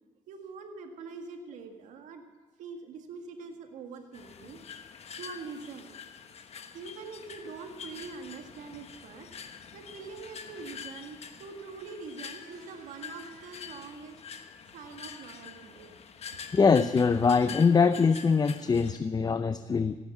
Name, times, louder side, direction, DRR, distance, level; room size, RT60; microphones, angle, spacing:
voice 1, 0.3-2.2 2.6-4.6 5.2-5.9 6.7-9.3 9.7-14.2 14.7-16.0, right 4 dB, 85° right, 5 dB, 1.8 m, -44 dB
sound 1, 4.1-19.0, left 6 dB, 55° left, 1.2 m, -46 dB
voice 2, 16.5-20.0, left 5 dB, 30° left, 12 dB, 0.6 m, -23 dB
16.0 x 9.5 x 7.6 m, 1.2 s
cardioid pair, 75°, 13 cm